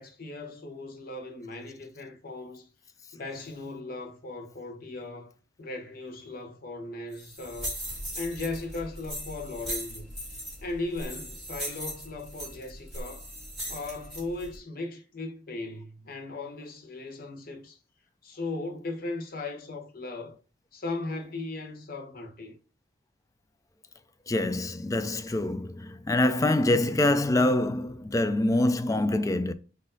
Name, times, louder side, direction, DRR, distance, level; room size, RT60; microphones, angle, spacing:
voice 1, 0.0-2.7 3.1-5.3 5.6-7.8 8.1-10.1 10.6-13.3 13.7-17.8 18.2-20.4 20.7-22.6, left 2 dB, 50° left, 0.9 m, -37 dB
sound 1, 7.1-14.6, equal, ahead, 2.0 m, -39 dB
voice 2, 24.3-29.5, left 1 dB, 20° left, 0.3 m, -25 dB
4.3 x 2.6 x 3.8 m
head